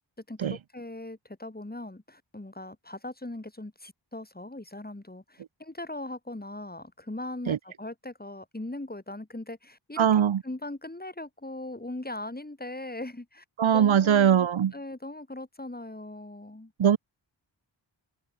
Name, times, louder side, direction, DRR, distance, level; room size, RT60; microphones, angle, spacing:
voice 1, 0.3-10.1 10.4-13.4 13.7-16.7, left 2 dB, 20° left, 7.5 m, -39 dB
voice 2, 10.0-10.4 13.6-14.7 16.8-17.0, right 9 dB, 80° right, 0.9 m, -21 dB
wide cardioid pair, 105°, 47 cm